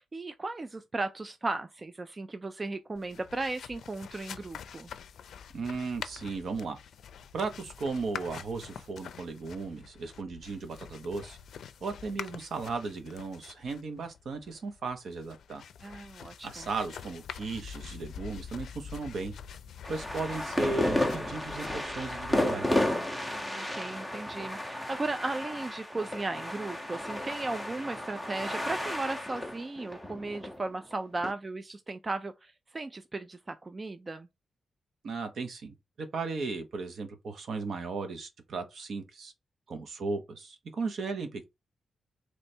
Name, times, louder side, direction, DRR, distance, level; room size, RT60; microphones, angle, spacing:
voice 1, 0.0-4.9 15.8-16.7 23.3-34.3, right 2 dB, 25° right, 0.3 m, -36 dB
sound 1, 2.9-22.9, left 7 dB, 80° left, 0.4 m, -46 dB
voice 2, 5.5-6.8 7.3-11.4 11.8-15.6 16.4-19.3 19.9-22.7 35.0-39.3 39.7-41.4, right 4 dB, 60° right, 0.9 m, -36 dB
sound 2, 19.8-31.3, left 1 dB, 5° right, 0.7 m, -33 dB
3.2 x 3.0 x 4.3 m
wide cardioid pair, 140°, 0 cm